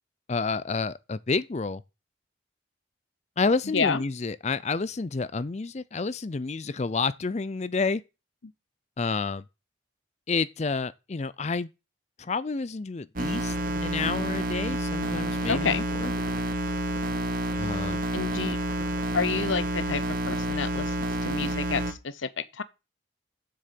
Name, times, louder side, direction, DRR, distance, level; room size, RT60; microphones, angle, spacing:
voice 1, 0.3-1.8 3.4-8.0 9.0-9.4 10.3-11.7 12.2-13.6 13.8-16.1 17.6-18.0, left 4 dB, 35° left, 0.4 m, -29 dB
sound 1, 13.2-21.9, right 1 dB, 45° right, 1.5 m, -29 dB
voice 2, 15.5-15.9 18.1-18.6 19.1-21.0 21.2-22.6, left 5 dB, 75° left, 0.7 m, -29 dB
7.8 x 6.6 x 7.5 m
head